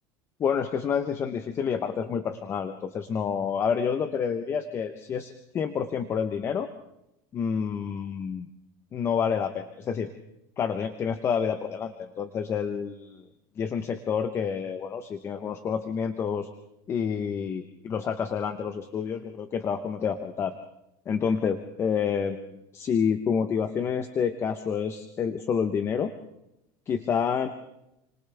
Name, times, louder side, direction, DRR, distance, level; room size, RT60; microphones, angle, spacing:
voice 1, 0.4-6.7 7.3-8.5 8.9-10.1 10.6-13.2 13.6-16.5 16.9-20.5 21.1-26.1 26.9-27.5, left 6 dB, 25° left, 9 dB, 0.9 m, -28 dB
29.5 x 26.0 x 3.5 m, 0.88 s
supercardioid pair, 155°, 11 cm